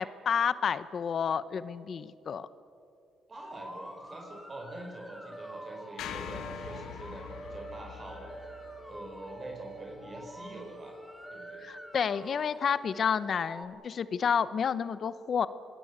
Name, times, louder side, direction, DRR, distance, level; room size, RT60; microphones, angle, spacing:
voice 1, 0.0-2.5 11.6-15.5, left 7 dB, 55° left, 15 dB, 1.0 m, -30 dB
sound 1, 3.3-13.6, right 1 dB, 5° right, 3.5 m, -46 dB
voice 2, 3.3-8.3 8.9-11.0 11.3-11.6, right 1 dB, 35° right, 1 dB, 4.9 m, -45 dB
sound 2, 6.0-10.3, left 8 dB, 85° left, 1.7 m, -44 dB
27.0 x 20.0 x 8.3 m, 2.5 s
cardioid pair, 90°, 0 cm